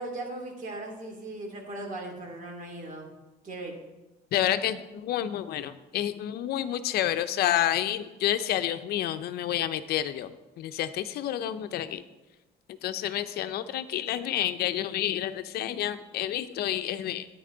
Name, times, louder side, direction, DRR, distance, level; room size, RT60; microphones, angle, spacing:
voice 1, 0.0-3.1 3.4-3.8, right 2 dB, 50° right, 1 dB, 2.8 m, -38 dB
voice 2, 4.3-10.3 10.6-12.0 12.8-17.3, left 12 dB, 70° left, 12 dB, 0.6 m, -29 dB
10.0 x 9.2 x 3.9 m, 1.1 s
cardioid pair, 110°, 17 cm